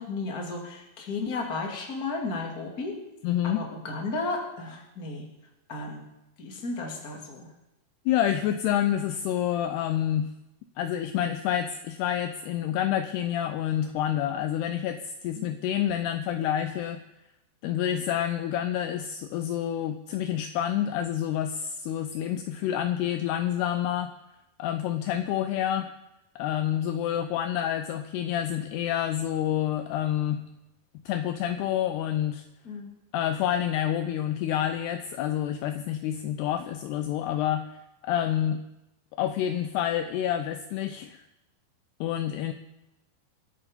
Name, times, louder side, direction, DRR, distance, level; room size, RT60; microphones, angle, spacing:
voice 1, 0.0-2.9 3.4-5.2 5.7-6.0 6.4-7.5 15.3-15.4 32.6-32.9, left 3 dB, 30° left, 1 dB, 2.1 m, -33 dB
voice 2, 3.2-3.6 8.1-10.3 10.8-17.0 17.6-24.1 24.6-25.9 26.4-30.4 31.1-32.4 33.1-37.8 38.0-38.6 39.2-41.2 42.0-42.5, left 10 dB, 85° left, 8 dB, 2.3 m, -28 dB
25.5 x 8.7 x 5.2 m, 0.91 s
omnidirectional pair, 5.5 m